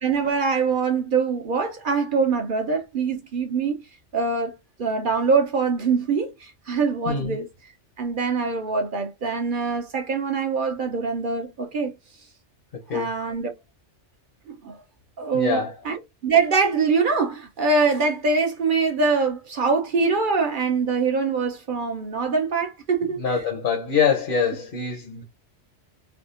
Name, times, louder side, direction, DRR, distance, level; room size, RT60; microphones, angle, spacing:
voice 1, 0.0-3.8 4.1-4.5 4.8-7.5 8.0-11.9 12.9-13.5 14.5-14.8 15.2-16.0 16.2-23.4, right 4 dB, 50° right, 0.7 m, -23 dB
voice 2, 7.0-7.4 12.7-13.1 15.3-15.8 23.2-25.2, left 6 dB, 55° left, 0.9 m, -24 dB
3.5 x 2.3 x 2.4 m
omnidirectional pair, 1.2 m